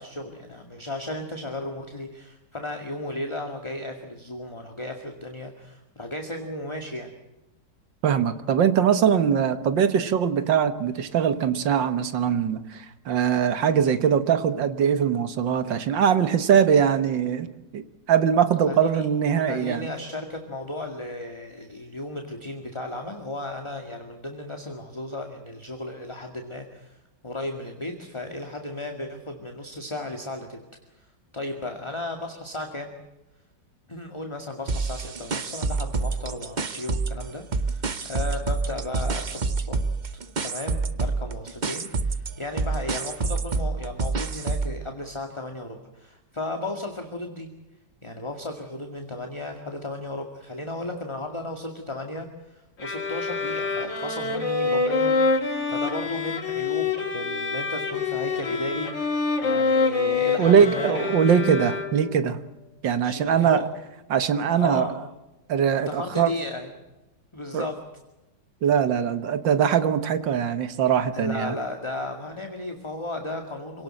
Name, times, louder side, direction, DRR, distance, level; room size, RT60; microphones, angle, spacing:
voice 1, 0.0-7.1 18.7-19.1 19.5-27.0 27.2-30.6 31.3-33.0 33.9-39.8 40.4-47.5 48.0-55.2 55.7-61.2 63.0-63.6 64.5-65.0 65.9-66.7 67.3-67.8 71.1-73.8, left 1 dB, 15° left, 4 dB, 2.1 m, -35 dB
voice 2, 8.0-17.5 17.7-19.9 60.4-62.4 62.8-63.6 64.1-64.9 65.5-66.3 67.5-67.7 68.6-71.5, right 8 dB, 80° right, 11 dB, 2.0 m, -22 dB
sound 1, 34.7-37.2 37.5-44.8, right 3 dB, 35° right, 0.7 m, -27 dB
sound 2, 52.8-62.2, left 4 dB, 80° left, 3.6 m, -26 dB
27.0 x 18.5 x 7.7 m, 1.0 s
omnidirectional pair, 2.0 m